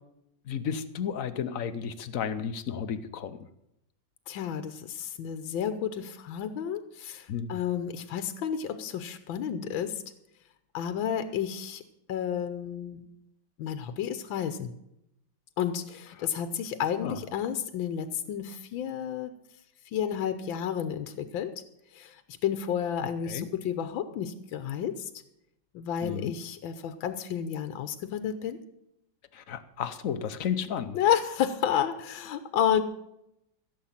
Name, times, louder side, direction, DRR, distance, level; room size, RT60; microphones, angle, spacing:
voice 1, 0.5-3.4 7.3-7.6 16.2-16.3 17.0-17.2 23.3-23.5 26.0-26.3 29.3-31.0, left 7 dB, 55° left, 11 dB, 1.0 m, -33 dB
voice 2, 4.3-10.0 10.7-11.8 12.1-13.0 13.6-14.7 15.6-19.3 19.9-21.5 21.9-25.1 25.7-28.6 30.9-32.8, left 9 dB, 85° left, 10 dB, 1.6 m, -31 dB
15.5 x 7.6 x 7.3 m, 0.81 s
omnidirectional pair, 2.1 m